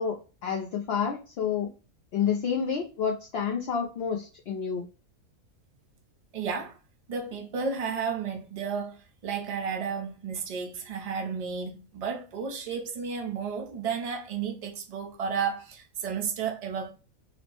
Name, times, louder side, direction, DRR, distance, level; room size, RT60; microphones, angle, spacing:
voice 1, 0.0-1.7 2.1-4.8, left 7 dB, 65° left, 0.6 m, -29 dB
voice 2, 6.3-6.8 7.1-16.9, right 6 dB, 85° right, 0.3 m, -32 dB
4.1 x 2.0 x 2.9 m
omnidirectional pair, 1.5 m